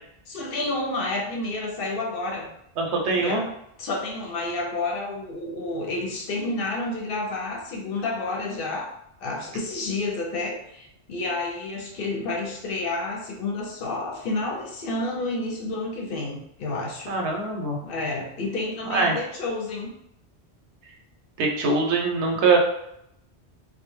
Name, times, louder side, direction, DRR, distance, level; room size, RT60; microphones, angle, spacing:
voice 1, 0.3-2.5 3.1-3.5 3.8-8.9 9.2-17.2 17.8-20.0, left 2 dB, 65° left, 0 dB, 0.7 m, -30 dB
voice 2, 2.8-3.4 17.1-17.8 18.9-19.1 21.4-22.6, right 4 dB, 80° right, 1 dB, 0.9 m, -22 dB
2.3 x 2.0 x 3.0 m, 0.77 s
omnidirectional pair, 1.1 m